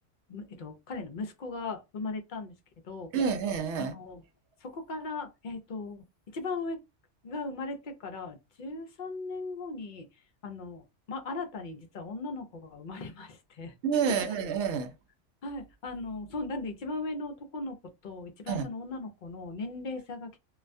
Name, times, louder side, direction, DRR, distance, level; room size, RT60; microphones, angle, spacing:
voice 1, 0.3-2.5 2.8-3.1 3.8-4.2 4.6-6.8 7.2-10.1 10.4-13.7 14.1-14.3 15.4-17.8 18.0-20.4, left 3 dB, 55° left, 0.5 m, -38 dB
voice 2, 3.1-4.0 13.8-14.9 18.5-18.7, right 6 dB, 70° right, 0.8 m, -28 dB
2.3 x 2.1 x 2.5 m
omnidirectional pair, 1.3 m